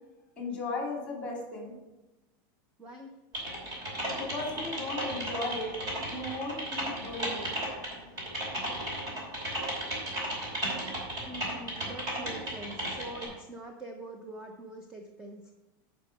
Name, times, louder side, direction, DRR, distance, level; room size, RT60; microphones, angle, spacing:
voice 1, 0.4-1.7 4.2-5.8 6.1-7.5, left 2 dB, 10° left, -1 dB, 2.5 m, -36 dB
voice 2, 2.8-3.2 4.5-4.7 11.2-15.5, right 2 dB, 5° right, 3 dB, 0.5 m, -44 dB
Typing, 3.3-13.2, right 1 dB, 35° right, 2.8 m, -35 dB
11.0 x 5.1 x 4.7 m, 1.0 s
supercardioid pair, 175°, 12 cm